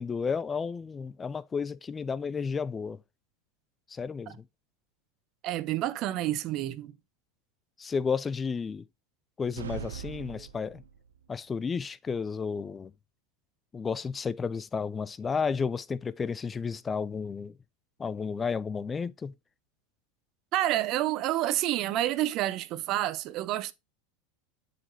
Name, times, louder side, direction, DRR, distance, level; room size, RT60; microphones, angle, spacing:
voice 1, 0.0-3.0 3.9-4.4 7.8-8.9 9.4-10.8 11.3-12.9 13.7-17.5 18.0-19.3, left 5 dB, 20° left, 0.4 m, -32 dB
voice 2, 5.4-6.9 20.5-23.7, right 14 dB, 50° right, 0.8 m, -29 dB
sound 1, 9.6-11.2, right 8 dB, 85° right, 0.6 m, -41 dB
9.8 x 5.1 x 2.7 m
hypercardioid pair, 90°, 0 cm